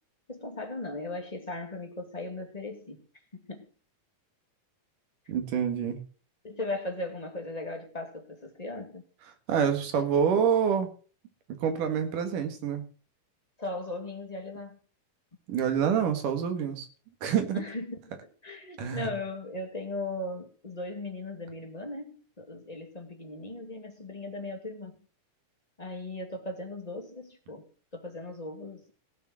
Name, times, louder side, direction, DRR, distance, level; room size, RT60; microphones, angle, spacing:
voice 1, 0.3-3.0 3.3-3.7 6.4-9.0 13.6-14.8 17.5-24.9 25.8-27.6 27.9-28.9, left 2 dB, 15° left, 4 dB, 1.7 m, -38 dB
voice 2, 5.3-6.0 9.5-10.9 11.6-12.8 15.5-16.9 17.2-17.6 18.8-19.1, right 7 dB, 75° right, 7 dB, 3.4 m, -27 dB
17.5 x 6.7 x 6.3 m, 0.38 s
omnidirectional pair, 3.8 m